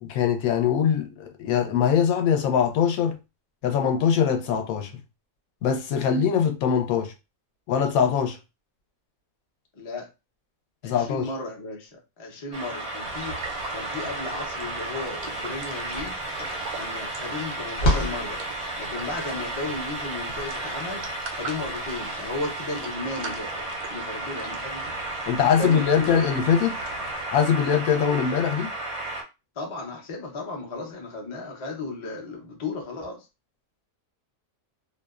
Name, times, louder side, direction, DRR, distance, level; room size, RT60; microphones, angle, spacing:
voice 1, 0.0-3.2 3.6-5.0 5.6-7.1 7.7-8.4 10.8-11.3 25.3-26.8 27.3-28.7, left 7 dB, 85° left, 1.0 m, -22 dB
voice 2, 9.7-10.1 10.8-13.4 13.7-16.2 16.7-18.4 18.8-21.1 21.4-24.8 25.4-26.3 29.6-33.3, left 2 dB, 40° left, 0.4 m, -35 dB
sound 1, 12.5-29.2, right 2 dB, 45° right, 0.5 m, -33 dB
sound 2, 13.0-27.3, right 4 dB, 90° right, 1.0 m, -42 dB
sound 3, 15.7-21.7, equal, 55° left, 1.0 m, -31 dB
2.6 x 2.1 x 2.3 m
omnidirectional pair, 1.4 m